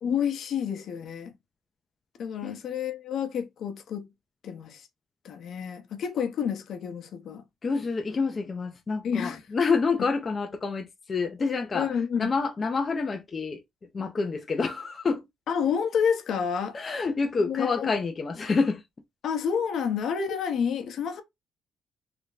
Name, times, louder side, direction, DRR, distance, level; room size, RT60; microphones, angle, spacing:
voice 1, 0.0-1.3 2.2-4.1 4.4-4.9 5.2-7.4 9.0-9.4 11.7-12.3 15.5-16.8 17.4-17.9 19.2-21.2, left 7 dB, 70° left, 0.8 m, -29 dB
voice 2, 7.6-11.9 12.2-13.6 13.9-15.3 16.7-18.8, left 4 dB, 35° left, 0.5 m, -28 dB
3.3 x 2.2 x 3.9 m
cardioid pair, 90°, 0 cm